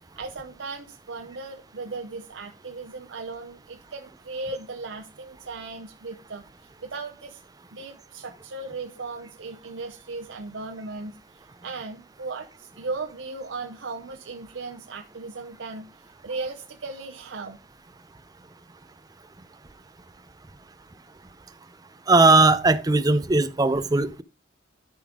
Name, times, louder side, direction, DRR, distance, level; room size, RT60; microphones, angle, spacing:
voice 1, 0.2-7.4 7.7-15.8 16.2-17.6, right 3 dB, 75° right, 0.7 m, -37 dB
voice 2, 22.1-24.2, right 3 dB, 20° right, 0.5 m, -18 dB
12.5 x 5.1 x 3.7 m
head